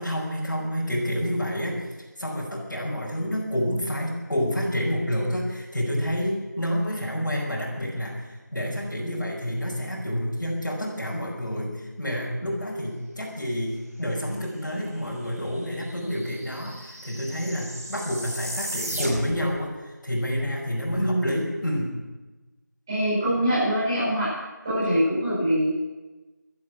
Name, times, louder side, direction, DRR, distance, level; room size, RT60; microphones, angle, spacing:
voice 1, 0.0-1.9 2.2-21.9, equal, 75° left, -5 dB, 5.7 m, -29 dB
sound 1, 15.0-15.1 15.3-19.5, right 1 dB, 50° right, 5.3 m, -36 dB
voice 2, 20.9-21.4 22.9-24.3 24.6-25.7, equal, 10° right, -13 dB, 7.3 m, -24 dB
16.5 x 13.0 x 6.4 m, 1.2 s
figure-of-eight pair, 175°, 10 cm